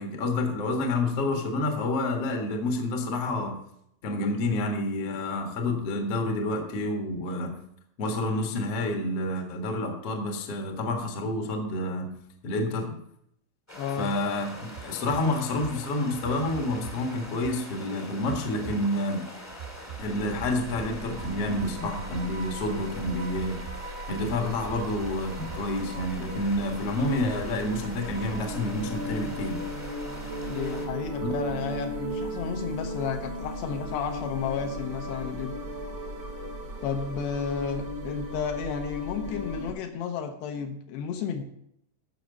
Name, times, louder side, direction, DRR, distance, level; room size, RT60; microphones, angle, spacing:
voice 1, 0.0-3.6 4.0-7.6 8.0-12.2 12.4-12.9 14.0-19.3 20.0-23.7 24.1-29.7 31.2-31.3, left 2 dB, 55° left, 3 dB, 1.6 m, -29 dB
voice 2, 13.7-14.1 30.5-35.6 36.8-41.4, left 6 dB, 75° left, 4 dB, 2.8 m, -32 dB
sound 1, 13.7-30.9, left 1 dB, 15° left, 0.6 m, -44 dB
sound 2, 14.8-17.0 17.3-17.6 18.2-19.1 19.5-22.4 23.0-23.9 24.1-25.2 25.4-26.1 26.5-27.0 27.4-27.5 28.1-28.7, right 10 dB, 80° right, 2.6 m, -43 dB
sound 3, 20.0-39.7, equal, 45° right, 1.1 m, -37 dB
14.0 x 6.1 x 5.3 m, 0.74 s
omnidirectional pair, 5.3 m